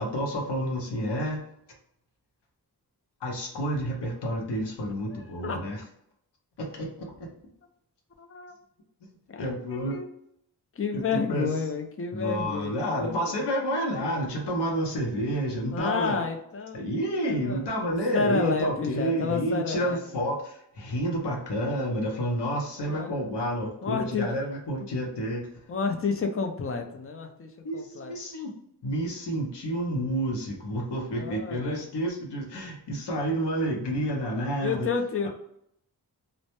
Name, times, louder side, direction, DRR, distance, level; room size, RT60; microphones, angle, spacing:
voice 1, 0.0-1.4 3.2-5.8 6.6-7.3 9.4-10.0 10.9-11.5 12.1-16.2 16.7-25.4 27.6-28.5 28.8-34.9, equal, 85° left, 0 dB, 0.7 m, -29 dB
voice 2, 5.1-5.6 8.2-8.6 9.3-10.1 10.8-13.4 15.7-16.9 17.2-17.7 18.1-20.0 22.8-23.4 23.8-24.2 25.7-28.1 31.2-31.8 34.6-35.3, left 5 dB, 35° left, 4 dB, 0.5 m, -30 dB
2.1 x 2.0 x 2.8 m, 0.73 s
cardioid pair, 60°, 40 cm